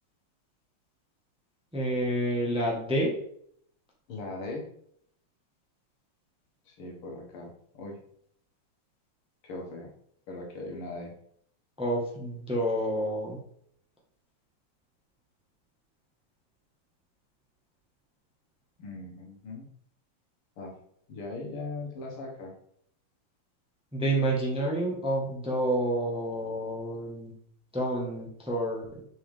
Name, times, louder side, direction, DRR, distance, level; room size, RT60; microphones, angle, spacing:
voice 1, 1.7-3.1 11.8-13.4 23.9-27.3 27.7-29.0, right 1 dB, 5° right, -3 dB, 1.0 m, -29 dB
voice 2, 4.1-4.7 6.7-8.0 9.4-9.9 10.3-11.2 18.8-19.7 20.6-20.7 21.1-22.5, left 2 dB, 75° left, 0 dB, 2.2 m, -39 dB
6.9 x 4.8 x 3.6 m, 0.67 s
omnidirectional pair, 2.4 m